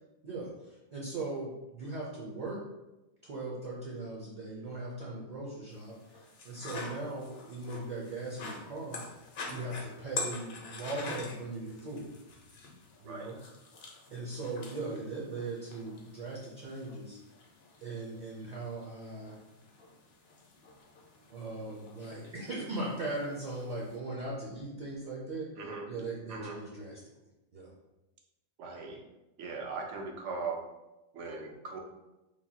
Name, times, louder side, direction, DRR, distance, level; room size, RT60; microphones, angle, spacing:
voice 1, 0.2-2.6 3.2-9.0 9.5-12.1 13.0-13.4 14.1-17.2 17.8-19.4 21.3-25.5 25.9-27.0 27.5-27.7, right 2 dB, 50° right, -4 dB, 0.5 m, -39 dB
sound 1, 5.7-24.0, left 3 dB, 65° left, 0.8 m, -46 dB
voice 2, 28.6-29.0 29.4-30.6 31.1-31.8, right 4 dB, 90° right, 1 dB, 0.9 m, -39 dB
3.2 x 2.2 x 2.7 m, 0.99 s
omnidirectional pair, 1.2 m